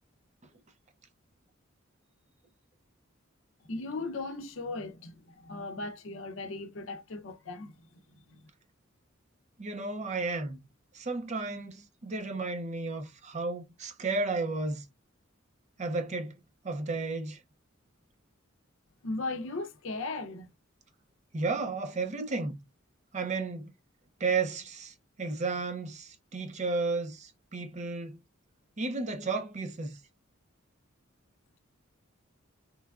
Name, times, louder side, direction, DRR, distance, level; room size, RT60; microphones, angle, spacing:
voice 1, 3.6-7.7 8.3-8.4 19.0-20.5, left 3 dB, 70° left, 0.6 m, -37 dB
voice 2, 9.6-10.6 10.9-14.8 15.8-16.3 16.6-17.4 21.3-22.6 23.1-23.7 24.2-28.2 28.8-30.0, right 3 dB, 35° right, 0.5 m, -33 dB
3.1 x 2.2 x 2.3 m
head